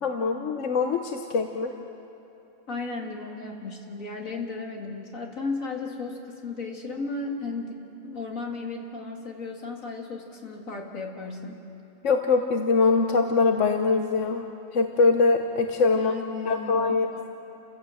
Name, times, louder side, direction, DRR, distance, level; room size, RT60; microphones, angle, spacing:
voice 1, 0.0-1.7 12.0-14.5 14.7-16.1 16.4-17.1, left 4 dB, 65° left, 5 dB, 1.3 m, -23 dB
voice 2, 2.7-11.6 15.9-17.2, left 3 dB, 85° left, 1 dB, 2.6 m, -35 dB
29.5 x 15.5 x 7.7 m, 2.9 s
omnidirectional pair, 1.4 m